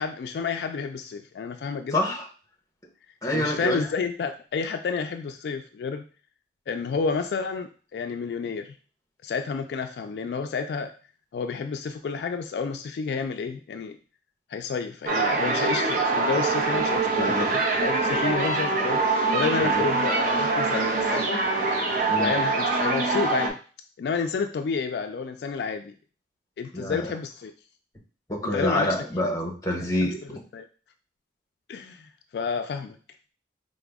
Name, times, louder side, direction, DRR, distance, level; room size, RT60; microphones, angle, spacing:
voice 1, 0.0-2.0 3.3-6.0 6.7-8.8 9.2-10.9 11.3-14.0 14.5-19.0 19.3-21.4 22.1-23.6 24.0-25.9 26.6-27.5 28.5-28.9 30.0-30.1 30.5-30.7 31.7-33.0, left 5 dB, 70° left, 6 dB, 0.3 m, -30 dB
voice 2, 1.9-2.3 3.2-3.9 17.2-17.5 19.6-19.8 22.1-22.3 26.7-27.1 28.3-30.2, left 1 dB, 20° left, 1 dB, 0.8 m, -27 dB
sound 1, 15.1-23.5, right 3 dB, 50° right, 0.6 m, -24 dB
4.8 x 2.1 x 3.4 m, 0.38 s
head